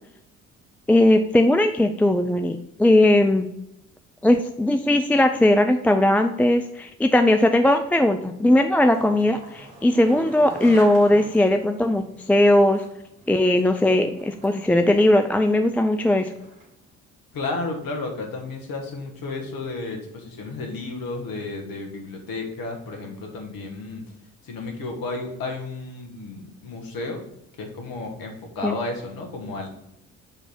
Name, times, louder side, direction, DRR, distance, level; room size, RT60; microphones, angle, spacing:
voice 1, 0.9-3.5 4.2-12.8 13.3-16.3 28.6-28.8, left 1 dB, 5° left, 6 dB, 0.3 m, -19 dB
Skateboard, 8.5-16.8, right 2 dB, 75° right, 2.0 m, -44 dB
voice 2, 17.3-24.1 24.4-27.2 27.6-29.7, left 3 dB, 55° left, 2 dB, 1.8 m, -32 dB
7.1 x 3.4 x 6.0 m, 0.80 s
figure-of-eight pair, 45°, 41 cm